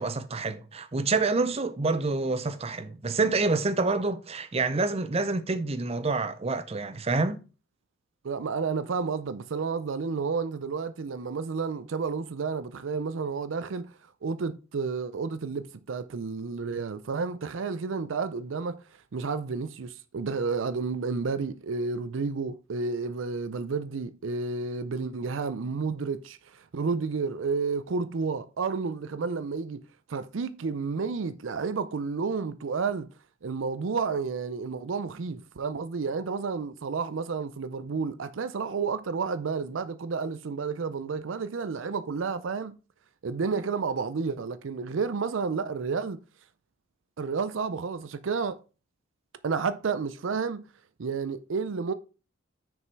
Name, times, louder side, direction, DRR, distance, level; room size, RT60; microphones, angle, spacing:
voice 1, 0.0-7.4, right 3 dB, 30° right, 0.6 m, -27 dB
voice 2, 8.2-13.9 14.2-18.8 19.1-29.8 30.1-33.1 33.4-42.8 43.2-46.2 47.2-48.6 49.4-50.6 51.0-51.9, right 5 dB, 75° right, 0.5 m, -31 dB
6.5 x 5.2 x 4.6 m
head